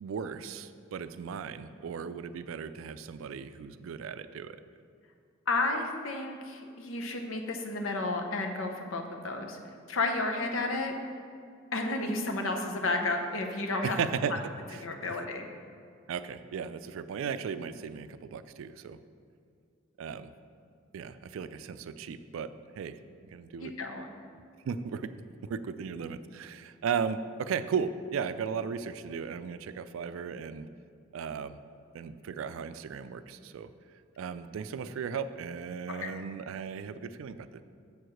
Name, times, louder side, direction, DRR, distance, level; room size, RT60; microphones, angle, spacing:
voice 1, 0.0-4.6 13.8-14.4 14.7-14.8 16.1-19.0 20.0-20.3 20.9-23.0 23.3-23.7 24.6-30.7 31.1-31.6 31.9-33.7 34.2-37.6, right 6 dB, 90° right, 12 dB, 0.3 m, -36 dB
voice 2, 5.5-9.6 9.9-10.9 11.7-14.0 14.3-14.4 14.8-15.5 23.6-24.1 35.9-36.1, left 2 dB, 85° left, 4 dB, 0.8 m, -32 dB
7.1 x 4.7 x 6.3 m, 2.3 s
head